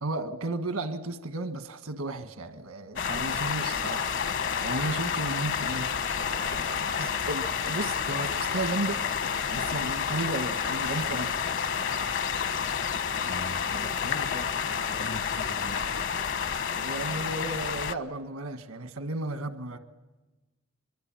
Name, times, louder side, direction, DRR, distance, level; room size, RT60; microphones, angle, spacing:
voice 1, 0.0-11.3 16.7-19.8, right 2 dB, 80° right, 9 dB, 1.6 m, -34 dB
sound 1, 3.0-17.9, left 7 dB, 60° left, 1.1 m, -30 dB
voice 2, 13.2-14.5 14.9-15.8, left 1 dB, 80° left, 5 dB, 2.1 m, -40 dB
24.0 x 23.0 x 8.9 m, 1.2 s
head